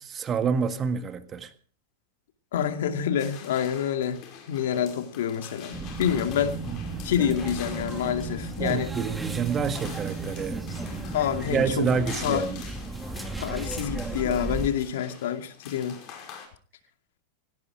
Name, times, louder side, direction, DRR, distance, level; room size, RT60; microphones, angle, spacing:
voice 1, 0.0-1.5 6.7-6.8 8.6-10.6 11.5-12.6, right 6 dB, 25° right, 1.7 m, -28 dB
voice 2, 2.5-4.2 4.5-6.6 7.0-8.9 11.1-11.9 12.2-12.5 13.4-16.0, left 9 dB, 80° left, 2.4 m, -27 dB
sound 1, 3.2-16.5, left 7 dB, 40° left, 5.3 m, -46 dB
sound 2, 5.7-14.7, right 3 dB, 5° right, 2.3 m, -34 dB
17.0 x 17.0 x 4.9 m
supercardioid pair, 135°, 0 cm